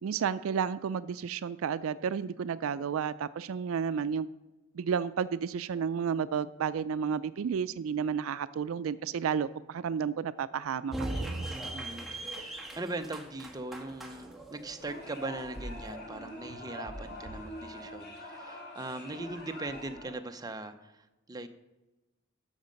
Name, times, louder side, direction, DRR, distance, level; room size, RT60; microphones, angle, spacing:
voice 1, 0.0-4.3 4.7-11.5, right 7 dB, 80° right, 16 dB, 0.4 m, -32 dB
sound 1, 10.9-16.0, right 1 dB, ahead, 1.4 m, -39 dB
voice 2, 11.7-21.5, right 2 dB, 20° right, 7 dB, 0.7 m, -40 dB
sound 2, 14.8-20.1, left 1 dB, 55° left, 3.0 m, -43 dB
12.5 x 6.5 x 5.2 m, 1.0 s
head